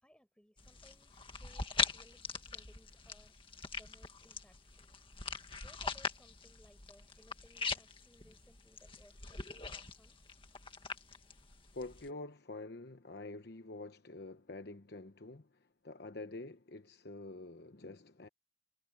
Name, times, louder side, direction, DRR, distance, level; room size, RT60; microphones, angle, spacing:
voice 1, 0.0-3.4 3.7-4.9 5.6-10.2, equal, 5° left, 5.2 m, -64 dB
sound 1, 0.6-12.1, left 4 dB, 30° left, 1.8 m, -42 dB
voice 2, 11.7-18.3, left 2 dB, 55° left, 1.0 m, -47 dB
head